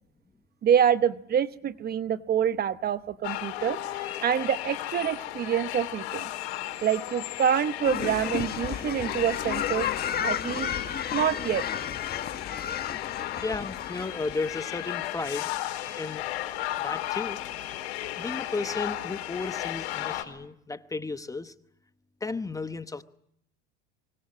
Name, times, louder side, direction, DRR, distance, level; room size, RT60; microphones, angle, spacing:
voice 1, 0.6-3.8 4.2-6.3 6.8-9.9 10.2-10.7 11.1-11.7, right 9 dB, 30° right, 0.9 m, -26 dB
sound 1, 3.2-20.2, left 14 dB, 80° left, 4.2 m, -35 dB
sound 2, 7.8-15.6, left 9 dB, 30° left, 1.4 m, -33 dB
voice 2, 13.4-15.5 16.0-16.2 16.8-17.4 18.2-21.5 22.2-23.0, left 3 dB, 10° left, 0.9 m, -34 dB
24.5 x 24.0 x 7.6 m
supercardioid pair, 120°, 32 cm